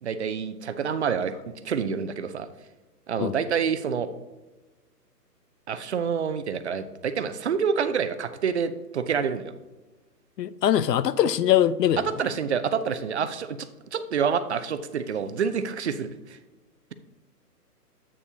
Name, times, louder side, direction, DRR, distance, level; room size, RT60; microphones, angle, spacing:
voice 1, 0.0-1.3 1.6-2.5 3.1-4.1 5.7-9.5 12.0-16.4, right 6 dB, 45° right, 11 dB, 0.5 m, -27 dB
voice 2, 10.4-12.0, left 11 dB, 75° left, 17 dB, 0.6 m, -22 dB
8.5 x 7.0 x 2.8 m, 1.2 s
hypercardioid pair, 150°, 49 cm